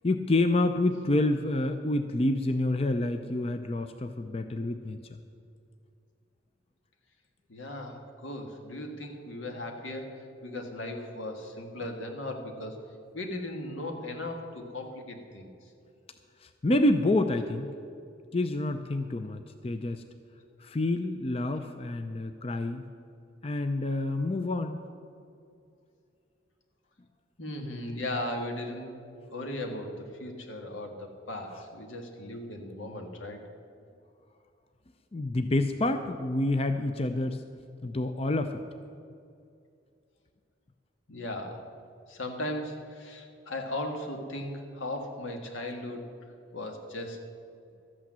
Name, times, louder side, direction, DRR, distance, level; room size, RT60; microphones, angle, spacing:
voice 1, 0.0-5.2 16.4-17.7 18.3-20.0 20.6-22.8 23.4-24.8 35.1-37.4 37.8-38.6, left 2 dB, 30° left, 8 dB, 0.5 m, -28 dB
voice 2, 7.5-12.8 13.1-15.7 27.4-29.0 29.3-33.4 41.1-41.6 42.1-46.0 46.5-47.2, left 1 dB, 85° left, 3 dB, 1.8 m, -37 dB
13.5 x 8.7 x 7.5 m, 2.5 s
head